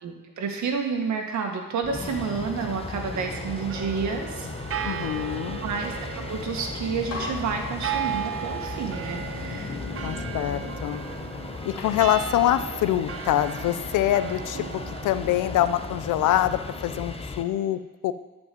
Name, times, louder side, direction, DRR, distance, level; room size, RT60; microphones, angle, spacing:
voice 1, 0.0-4.8 5.6-9.8 13.7-13.8, right 5 dB, 70° right, 3 dB, 1.9 m, -30 dB
sound 1, 1.8-17.4, left 3 dB, 20° left, 0.9 m, -36 dB
sound 2, 3.1-17.2, right 9 dB, 50° right, 0.7 m, -36 dB
voice 2, 4.8-5.6 10.0-11.0 11.7-18.1, left 12 dB, 80° left, 13 dB, 0.6 m, -25 dB
sound 3, 6.5-6.7 7.1-8.4 9.0-11.4 11.8-13.6, left 4 dB, 55° left, 2.5 m, -40 dB
12.0 x 5.4 x 7.8 m, 1.1 s
cardioid pair, 90°, 30 cm